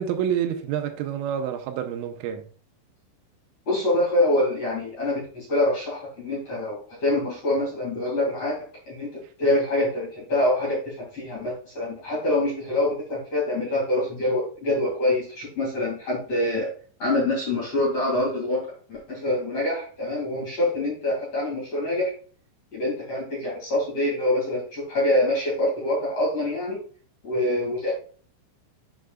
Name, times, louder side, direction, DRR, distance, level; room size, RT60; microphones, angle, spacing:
voice 1, 0.0-2.5, right 9 dB, 90° right, 3.4 m, -28 dB
voice 2, 3.7-8.6 8.9-16.7 17.0-22.1 22.7-26.8 27.2-27.9, left 1 dB, 40° left, 2.6 m, -25 dB
7.7 x 6.4 x 2.3 m
omnidirectional pair, 5.6 m